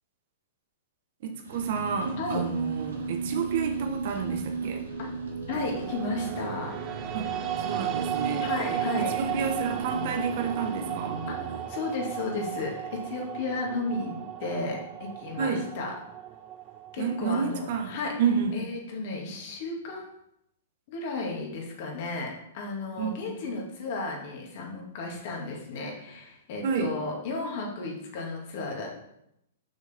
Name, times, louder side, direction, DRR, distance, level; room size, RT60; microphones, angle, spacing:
voice 1, 1.2-4.9 7.1-7.3 7.6-11.3 15.4-15.6 17.0-18.5 23.0-23.2 26.6-26.9, right 6 dB, 55° right, 4 dB, 1.3 m, -30 dB
sound 1, 1.4-11.6, right 4 dB, 90° right, 2.3 m, -34 dB
voice 2, 5.5-6.8 8.4-9.1 11.3-15.9 16.9-18.1 18.5-20.1 20.9-28.9, left 3 dB, 55° left, 0 dB, 2.3 m, -34 dB
sound 2, 5.5-17.7, right 11 dB, 35° right, 0.7 m, -35 dB
6.4 x 6.3 x 3.7 m, 0.80 s
hypercardioid pair, 120°, 0 cm